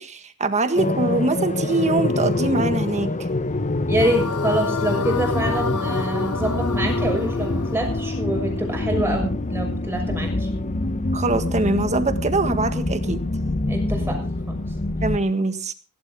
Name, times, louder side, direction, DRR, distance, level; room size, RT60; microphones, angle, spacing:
voice 1, 0.0-3.1 11.1-13.2 15.0-15.7, right 2 dB, 30° right, 9 dB, 1.7 m, -23 dB
sound 1, 0.8-15.2, left 2 dB, 35° left, 0.8 m, -25 dB
voice 2, 3.9-10.5 13.7-14.5, right 1 dB, 10° right, 2 dB, 6.7 m, -26 dB
sound 2, 4.0-9.2, left 4 dB, 75° left, 1.4 m, -31 dB
17.5 x 16.5 x 3.7 m, 0.33 s
head